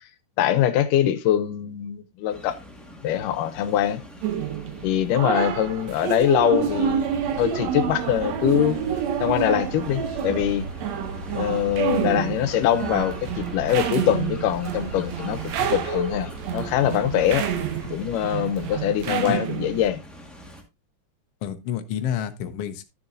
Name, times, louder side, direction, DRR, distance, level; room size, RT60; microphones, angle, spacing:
voice 1, 0.4-2.6 3.0-4.0 4.8-8.8 9.2-10.7 11.3-17.5 17.9-20.0, left 11 dB, 85° left, 2.4 m, -23 dB
sound 1, 2.3-20.6, equal, ahead, 0.5 m, -45 dB
sound 2, 4.2-19.9, right 8 dB, 65° right, 2.0 m, -29 dB
sound 3, 6.6-17.8, right 3 dB, 45° right, 2.6 m, -38 dB
voice 2, 19.1-19.4 21.4-22.8, left 9 dB, 70° left, 1.5 m, -29 dB
12.0 x 7.0 x 2.6 m
omnidirectional pair, 3.6 m